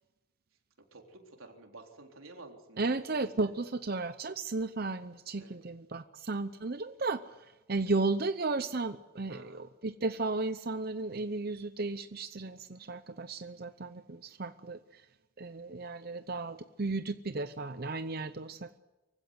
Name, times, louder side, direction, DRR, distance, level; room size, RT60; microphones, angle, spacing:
voice 1, 0.9-3.0 3.3-3.5 5.4-5.6 9.3-9.6, right 2 dB, 85° right, 2 dB, 3.9 m, -51 dB
voice 2, 2.8-15.1 15.4-18.8, right 3 dB, 50° right, 10 dB, 0.7 m, -34 dB
24.5 x 16.0 x 9.5 m, 1.1 s
head